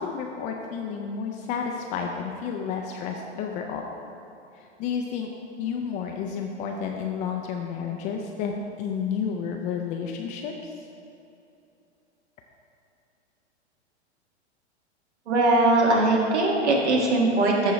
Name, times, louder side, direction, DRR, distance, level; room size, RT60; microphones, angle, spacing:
voice 1, 0.0-3.9 4.8-5.3 5.6-10.5, left 6 dB, 25° left, 2 dB, 0.3 m, -31 dB
voice 2, 15.3-17.7, right 2 dB, 75° right, -1 dB, 1.7 m, -21 dB
13.0 x 4.5 x 3.0 m, 2.7 s
hypercardioid pair, 110°, 34 cm